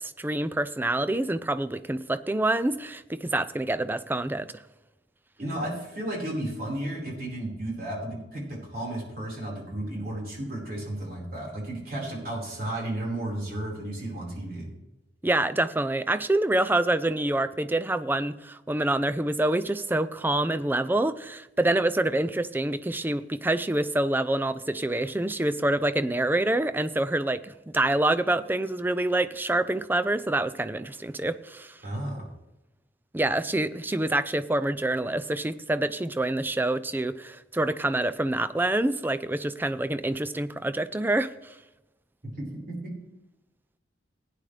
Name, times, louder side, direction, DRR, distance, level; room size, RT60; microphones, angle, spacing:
voice 1, 0.0-4.5 15.2-31.8 33.1-41.6, right 1 dB, 10° right, 13 dB, 0.4 m, -26 dB
voice 2, 5.4-14.7 31.8-32.2 42.4-42.8, right 1 dB, 50° right, -3 dB, 4.7 m, -33 dB
17.0 x 10.0 x 3.3 m, 0.97 s
head